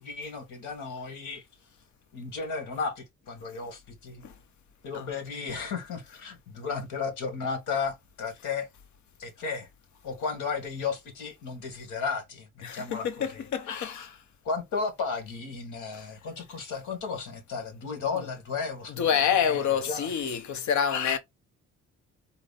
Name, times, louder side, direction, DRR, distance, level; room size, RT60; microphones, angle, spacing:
voice 1, 0.0-1.4 2.1-4.2 4.8-8.7 9.2-9.7 10.0-14.1 14.4-20.1, left 5 dB, 85° left, 1.9 m, -34 dB
voice 2, 12.6-14.2 15.9-16.0 19.0-21.2, left 8 dB, 70° left, 1.1 m, -27 dB
4.1 x 3.0 x 4.2 m
cardioid pair, 90°, 30 cm